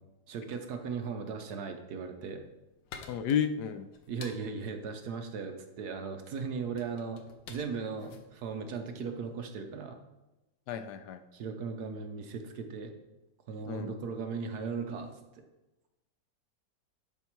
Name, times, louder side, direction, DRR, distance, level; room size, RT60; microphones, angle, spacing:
voice 1, 0.3-2.4 4.1-7.2 7.5-10.0 11.3-12.9 13.5-15.4, right 5 dB, 65° right, 6 dB, 1.3 m, -37 dB
sound 1, 2.2-9.4, left 5 dB, 90° left, 1.5 m, -52 dB
voice 2, 3.1-3.9 10.7-11.2 13.7-13.9, left 8 dB, 75° left, 10 dB, 1.1 m, -32 dB
10.5 x 4.6 x 4.5 m, 1.0 s
omnidirectional pair, 1.9 m